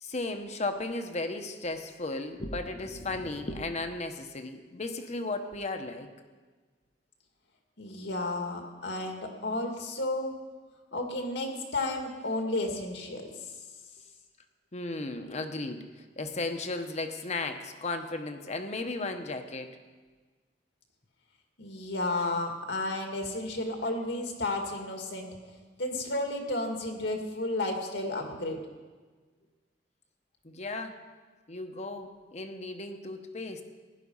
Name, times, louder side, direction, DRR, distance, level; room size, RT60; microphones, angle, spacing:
voice 1, 0.0-6.1 14.7-15.9 16.2-19.8 30.4-31.0 31.5-33.6, left 2 dB, 40° left, 6 dB, 1.0 m, -35 dB
voice 2, 7.8-10.4 10.9-13.3 21.6-25.3 25.8-28.6, left 2 dB, 80° left, 3 dB, 2.2 m, -32 dB
16.0 x 11.0 x 5.5 m, 1.4 s
head